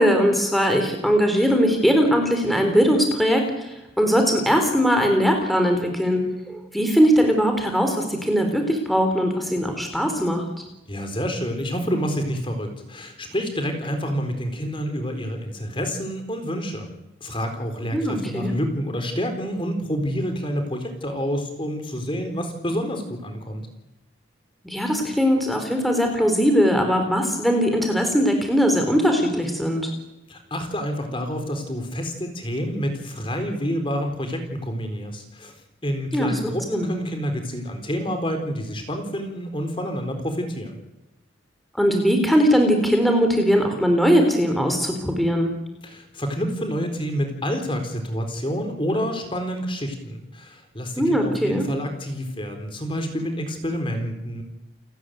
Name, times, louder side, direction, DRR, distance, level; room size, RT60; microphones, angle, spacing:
voice 1, 0.0-6.2 6.5-10.4 17.9-18.5 24.6-29.9 36.1-36.4 36.7-37.0 41.8-45.5 51.0-51.7, equal, ahead, 4 dB, 3.8 m, -20 dB
voice 2, 10.9-16.9 17.2-23.7 30.3-35.5 35.8-40.8 45.8-54.4, equal, 25° left, 6 dB, 4.0 m, -28 dB
29.5 x 13.5 x 9.4 m, 0.96 s
head